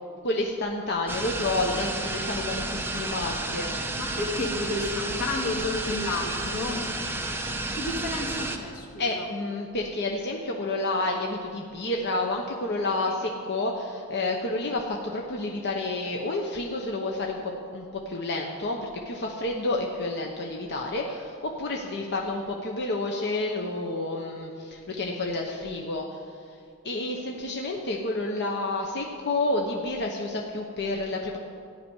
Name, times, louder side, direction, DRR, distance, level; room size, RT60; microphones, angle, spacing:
voice 1, 0.2-3.7 9.0-26.2 26.8-31.4, left 2 dB, 50° left, 0 dB, 1.0 m, -30 dB
sound 1, 1.1-8.6, right 2 dB, 10° right, 0.9 m, -31 dB
voice 2, 4.0-6.8 7.7-9.2 13.1-13.2, left 2 dB, 85° left, -2 dB, 2.4 m, -31 dB
14.0 x 6.0 x 10.0 m, 2.3 s
head